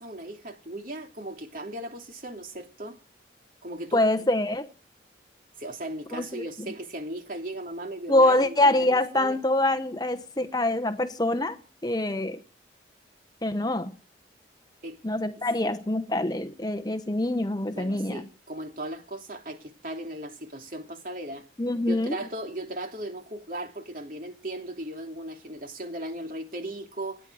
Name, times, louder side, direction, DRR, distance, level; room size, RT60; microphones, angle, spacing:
voice 1, 0.0-3.0 3.6-4.0 5.6-9.4 14.8-15.0 17.7-21.5 21.9-27.3, right 1 dB, 45° right, 3.1 m, -37 dB
voice 2, 3.9-4.7 6.1-6.4 8.1-11.6 11.8-12.4 13.4-13.9 15.0-18.2 21.6-22.2, left 1 dB, 20° left, 1.0 m, -25 dB
29.0 x 10.0 x 4.9 m
head